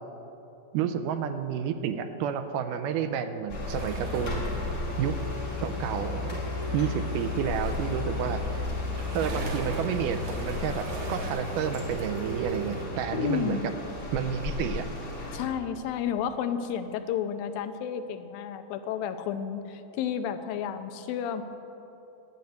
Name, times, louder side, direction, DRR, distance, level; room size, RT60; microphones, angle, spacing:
voice 1, 0.7-4.4 5.0-5.2 5.6-6.4 6.7-8.7 9.1-13.7 14.1-14.9, right 8 dB, 80° right, 8 dB, 2.0 m, -30 dB
sound 1, 3.5-15.5, left 2 dB, 35° left, 1.6 m, -34 dB
sound 2, 3.7-12.9, left 2 dB, 60° right, 3.1 m, -39 dB
voice 2, 13.1-13.7 15.3-21.4, left 8 dB, 85° left, 9 dB, 2.4 m, -31 dB
11.0 x 9.0 x 7.8 m, 3.0 s
omnidirectional pair, 4.1 m